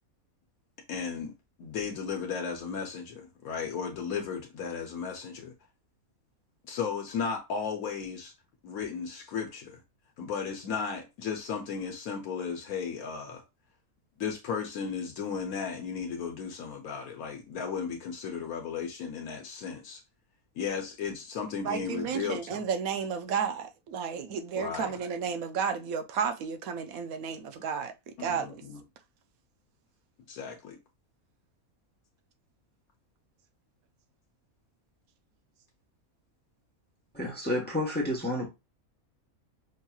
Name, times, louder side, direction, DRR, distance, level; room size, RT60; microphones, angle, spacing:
voice 1, 0.9-5.5 6.7-8.3 8.6-9.8 10.2-13.4 14.2-20.0 20.6-22.7 24.6-24.9 28.2-28.8 30.3-30.8, left 6 dB, 75° left, 1.2 m, -35 dB
voice 2, 21.6-27.9 28.2-28.6, right 6 dB, 75° right, 1.1 m, -32 dB
voice 3, 37.1-38.5, left 1 dB, 10° left, 0.9 m, -30 dB
5.4 x 2.8 x 2.3 m
omnidirectional pair, 1.5 m